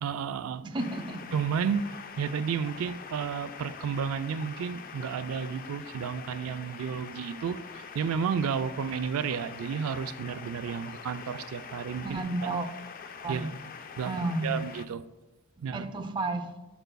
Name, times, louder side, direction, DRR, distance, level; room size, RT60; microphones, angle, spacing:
voice 1, 0.0-0.6 1.3-12.5 13.3-13.5 14.0-14.1 14.4-15.0 15.6-15.9, right 6 dB, 80° right, 11 dB, 0.3 m, -32 dB
voice 2, 0.6-1.3 12.0-12.7 13.2-13.5 14.1-14.6 15.7-16.5, right 2 dB, 20° right, 5 dB, 0.5 m, -32 dB
sound 1, 0.8-14.9, left 6 dB, 40° left, 0.3 m, -44 dB
11.0 x 7.8 x 2.2 m, 1.1 s
head